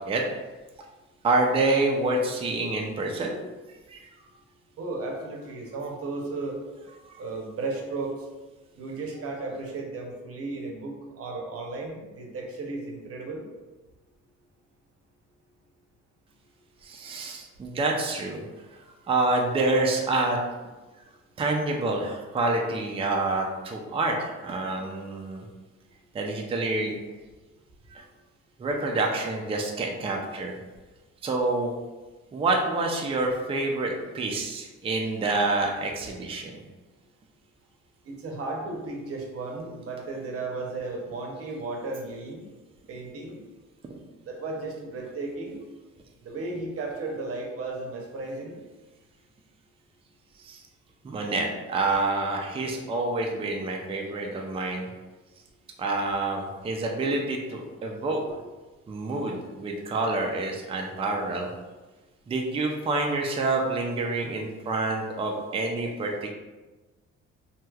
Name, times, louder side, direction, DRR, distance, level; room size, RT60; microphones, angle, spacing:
voice 1, 1.2-3.4 3.7-4.0 7.0-7.2 16.8-18.4 19.1-20.4 21.4-25.5 26.1-26.9 27.9-28.0 28.6-30.6 31.2-31.7 32.3-36.6 50.4-50.6 51.0-54.9 55.8-58.2 58.9-61.5 62.3-66.3, right 2 dB, 20° right, 1 dB, 0.4 m, -27 dB
voice 2, 4.8-6.6 7.2-8.1 8.8-13.4 38.0-42.4 42.9-43.4 44.2-45.6 46.2-48.6, right 3 dB, 50° right, 1 dB, 0.7 m, -34 dB
3.2 x 2.8 x 2.3 m, 1.2 s
cardioid pair, 100°, 30 cm